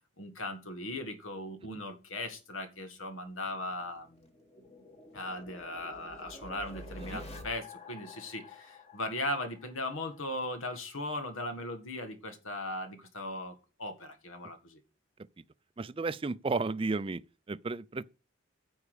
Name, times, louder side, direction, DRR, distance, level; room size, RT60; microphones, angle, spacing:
voice 1, 0.2-4.3 5.1-14.8, left 1 dB, 85° left, 1.9 m, -38 dB
sound 1, 3.4-10.2, left 2 dB, 30° left, 1.7 m, -49 dB
voice 2, 15.8-17.2 17.5-18.0, right 3 dB, 25° right, 0.4 m, -33 dB
9.7 x 7.2 x 5.0 m
head